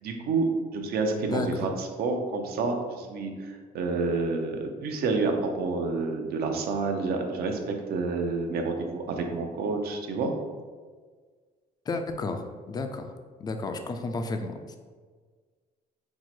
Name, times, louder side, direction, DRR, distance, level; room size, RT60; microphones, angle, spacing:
voice 1, 0.0-10.3, right 3 dB, 65° right, 3 dB, 0.6 m, -29 dB
voice 2, 1.1-1.7 11.9-13.1 13.4-14.8, left 3 dB, 25° left, 6 dB, 0.4 m, -32 dB
4.5 x 2.0 x 4.3 m, 1.5 s
cardioid pair, 110°, 17 cm